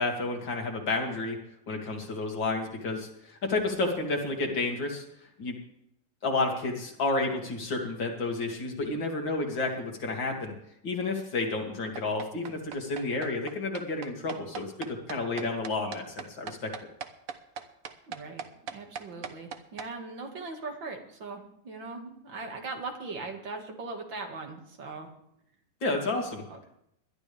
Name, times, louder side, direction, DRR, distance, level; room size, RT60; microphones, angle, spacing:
voice 1, 0.0-1.4 1.7-5.0 5.4-5.6 6.2-10.5 10.8-16.7 25.8-26.4, left 3 dB, 85° left, 1 dB, 3.1 m, -31 dB
sound 1, 11.9-19.9, right 7 dB, 55° right, 1.3 m, -40 dB
voice 2, 18.1-18.4 18.7-25.1 26.5-26.7, right 3 dB, 85° right, 3 dB, 2.8 m, -40 dB
20.5 x 12.0 x 3.5 m, 0.76 s
omnidirectional pair, 2.0 m